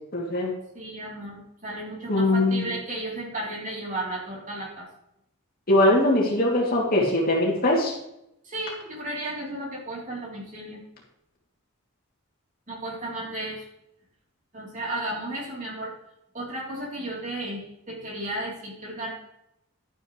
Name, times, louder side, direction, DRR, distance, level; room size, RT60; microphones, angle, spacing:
voice 1, 0.1-0.6 2.1-2.7 5.7-7.9, left 1 dB, 45° left, -2 dB, 2.9 m, -21 dB
voice 2, 0.7-4.9 8.4-10.8 12.7-13.6 14.5-15.9 16.3-19.1, right 1 dB, 35° right, -3 dB, 3.6 m, -34 dB
12.0 x 9.6 x 3.3 m, 0.81 s
head